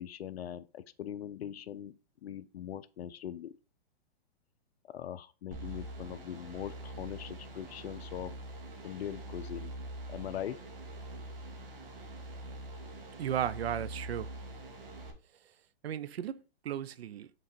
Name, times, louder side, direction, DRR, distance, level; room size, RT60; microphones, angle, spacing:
voice 1, 0.0-3.5 4.8-8.3 8.8-9.7 10.1-10.6, left 10 dB, 85° left, 0.6 m, -41 dB
sound 1, 5.5-15.1, right 1 dB, 65° right, 2.3 m, -44 dB
voice 2, 13.2-14.3 15.8-17.3, right 10 dB, 85° right, 0.6 m, -35 dB
6.1 x 3.9 x 4.3 m
hypercardioid pair, 160°, 30 cm